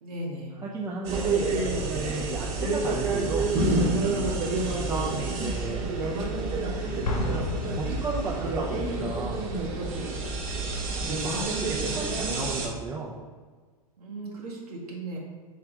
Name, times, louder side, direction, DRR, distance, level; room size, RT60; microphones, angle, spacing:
voice 1, 0.0-0.6 11.2-11.9 14.0-15.2, right 1 dB, 80° right, -3 dB, 0.8 m, -37 dB
voice 2, 0.6-3.5 4.7-5.8 6.8-7.4 7.7-9.4 11.0-13.1, right 3 dB, 15° right, -4 dB, 0.4 m, -34 dB
sound 1, 1.0-12.7, right 2 dB, 45° right, 0.9 m, -28 dB
Explosion, 7.0-8.8, left 2 dB, 80° left, 0.7 m, -33 dB
3.4 x 3.3 x 3.5 m, 1.5 s
hypercardioid pair, 105°, 19 cm